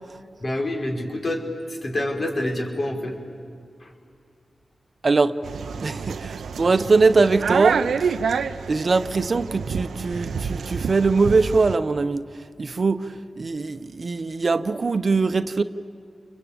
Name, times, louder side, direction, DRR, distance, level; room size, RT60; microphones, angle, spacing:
voice 1, 0.4-1.4 1.8-3.2 3.8-3.9, left 1 dB, 55° left, 1 dB, 5.2 m, -27 dB
voice 2, 5.0-5.3 5.8-8.1 8.7-12.2 12.6-15.6, right 4 dB, 55° right, 11 dB, 0.9 m, -21 dB
sound 1, 5.4-11.8, right 6 dB, 85° right, 0.7 m, -28 dB
29.5 x 23.0 x 8.7 m, 2.2 s
cardioid pair, 40°, 0 cm